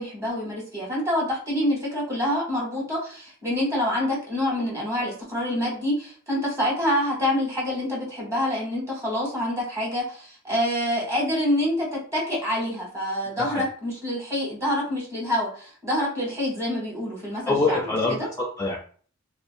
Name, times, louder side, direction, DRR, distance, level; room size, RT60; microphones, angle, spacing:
voice 1, 0.0-17.8 18.1-18.3, left 1 dB, 15° right, -4 dB, 1.0 m, -26 dB
voice 2, 17.5-18.8, left 3 dB, 15° left, -3 dB, 0.3 m, -25 dB
2.5 x 2.0 x 2.5 m, 0.43 s
head